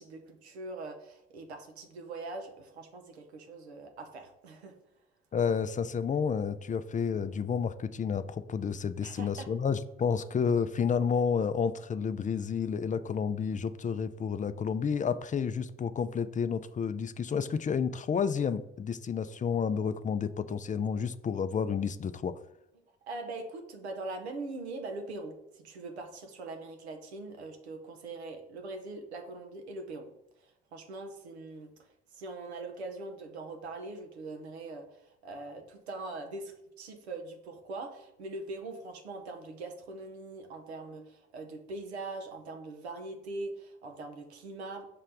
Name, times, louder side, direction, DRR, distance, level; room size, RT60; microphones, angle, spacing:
voice 1, 0.0-4.8 9.0-9.5 23.1-30.1 30.4-44.9, right 2 dB, 85° right, 4 dB, 0.8 m, -42 dB
voice 2, 5.3-22.4, left 6 dB, 25° left, 13 dB, 0.4 m, -30 dB
5.9 x 3.2 x 5.2 m, 0.84 s
figure-of-eight pair, 40°, 32 cm